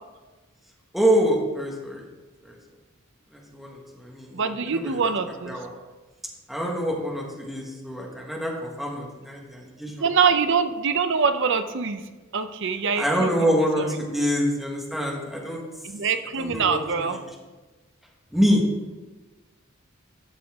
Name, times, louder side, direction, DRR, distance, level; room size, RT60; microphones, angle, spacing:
voice 1, 0.9-2.1 2.4-2.6 3.3-5.1 5.5-5.7 6.5-10.0 12.9-15.6 16.4-17.2 18.3-18.6, equal, ahead, -2 dB, 1.4 m, -26 dB
voice 2, 4.3-5.6 10.0-13.5 13.8-14.0 15.8-17.2, right 5 dB, 60° right, 9 dB, 0.6 m, -24 dB
12.5 x 7.1 x 3.6 m, 1.2 s
head